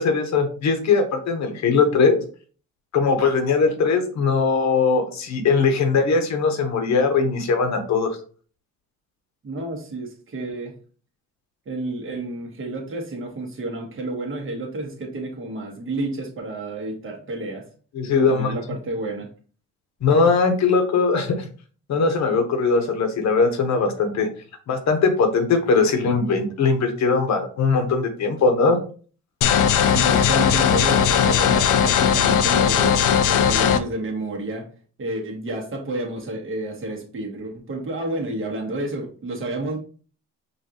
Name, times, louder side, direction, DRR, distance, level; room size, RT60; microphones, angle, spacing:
voice 1, 0.0-2.2 2.9-8.2 17.9-18.6 20.0-21.4 21.9-24.3 24.7-28.8, left 4 dB, 65° left, 5 dB, 1.0 m, -20 dB
voice 2, 9.4-10.7 11.6-17.6 18.1-19.3 29.8-34.7 35.0-39.8, right 2 dB, 45° right, 1 dB, 1.5 m, -30 dB
sound 1, 29.4-33.8, left 8 dB, 85° left, 0.5 m, -18 dB
5.5 x 2.6 x 2.9 m, 0.40 s
cardioid pair, 90°, 30 cm